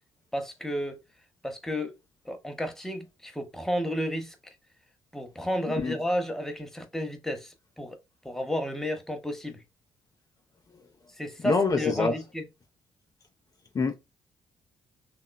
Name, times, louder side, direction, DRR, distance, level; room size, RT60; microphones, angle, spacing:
voice 1, 0.3-1.0 1.4-1.9 2.2-4.5 5.1-8.0 8.2-9.6 11.2-12.4, equal, 5° left, 0.7 m, -32 dB
voice 2, 11.4-12.1 13.7-13.9, left 4 dB, 35° left, 0.5 m, -25 dB
2.9 x 2.3 x 2.2 m
hypercardioid pair, 45°, 10 cm